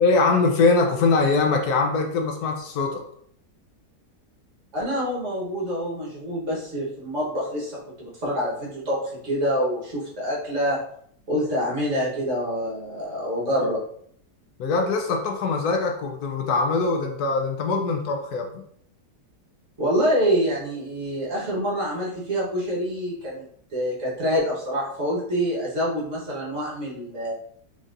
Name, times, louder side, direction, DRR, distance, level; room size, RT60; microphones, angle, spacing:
voice 1, 0.0-3.0 14.6-18.6, left 3 dB, 75° left, 3 dB, 1.1 m, -22 dB
voice 2, 4.7-10.8 11.3-13.8 19.8-23.4 23.7-27.3, equal, 50° right, -5 dB, 1.5 m, -26 dB
4.1 x 3.7 x 2.5 m, 0.64 s
omnidirectional pair, 1.7 m